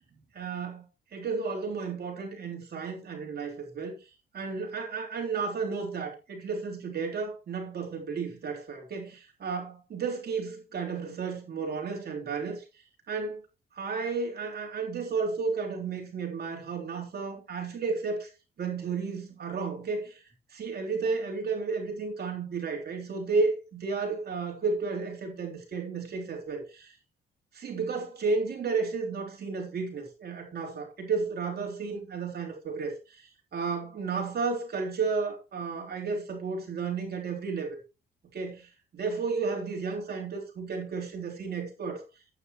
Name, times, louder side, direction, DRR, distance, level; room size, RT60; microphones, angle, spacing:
voice 1, 0.3-0.8 1.1-4.0 4.3-12.6 13.1-13.4 13.8-18.3 18.6-20.2 20.5-27.0 27.5-37.8 38.3-42.0, right 4 dB, 55° right, 3.6 m, -32 dB
12.0 x 9.2 x 3.1 m
cardioid pair, 90°, 20 cm